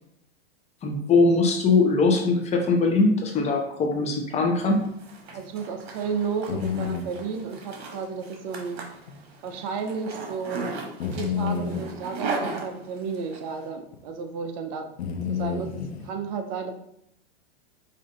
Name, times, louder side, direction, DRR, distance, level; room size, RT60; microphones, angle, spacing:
voice 1, 0.8-4.8, left 3 dB, 20° left, 1 dB, 0.8 m, -21 dB
Zipper (clothing), 4.7-13.4, right 3 dB, 85° right, 1.1 m, -37 dB
sound 1, 4.8-4.9 5.3-5.4 6.5-7.1 9.1-9.2 9.5-9.6 11.0-11.9 13.9-14.0 15.0-16.1, left 6 dB, 85° left, 0.8 m, -29 dB
voice 2, 5.3-8.8 9.4-10.6 11.1-14.9 15.3-15.7 16.0-16.7, right 5 dB, 45° right, 6 dB, 0.6 m, -32 dB
5.3 x 2.7 x 3.8 m, 0.75 s
supercardioid pair, 135°, 31 cm